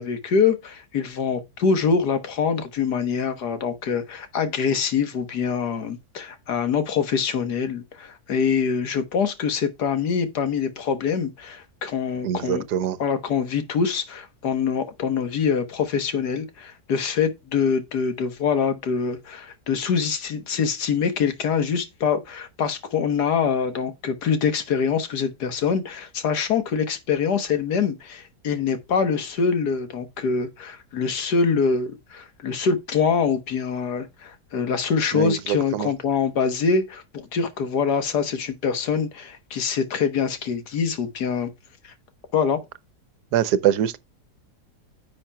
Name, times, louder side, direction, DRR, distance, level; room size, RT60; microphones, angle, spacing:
voice 1, 0.0-12.6 13.0-41.5 41.8-41.9 42.3-42.6, left 6 dB, 70° left, 1.8 m, -24 dB
voice 2, 12.2-13.0 35.1-35.9 43.3-44.0, right 10 dB, 75° right, 1.2 m, -23 dB
10.0 x 7.1 x 2.3 m
omnidirectional pair, 1.8 m